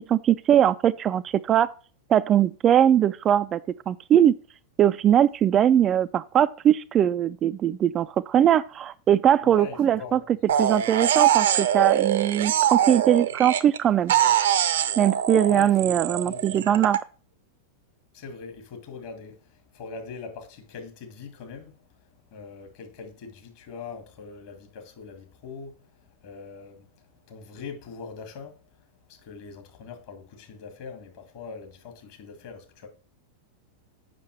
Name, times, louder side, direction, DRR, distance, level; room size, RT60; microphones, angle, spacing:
voice 1, 0.0-1.7 2.1-3.6 3.9-4.4 4.8-10.2 10.6-14.1 15.0-17.0, right 10 dB, 30° right, 0.3 m, -21 dB
voice 2, 9.4-10.3 15.5-16.8 18.1-21.7 22.3-25.8 26.2-26.9 27.3-28.6 29.1-32.9, left 5 dB, 50° left, 2.2 m, -41 dB
sound 1, 10.5-13.8 14.1-17.0, right 10 dB, 60° right, 0.7 m, -23 dB
7.5 x 6.1 x 4.7 m
figure-of-eight pair, 90°, 0 cm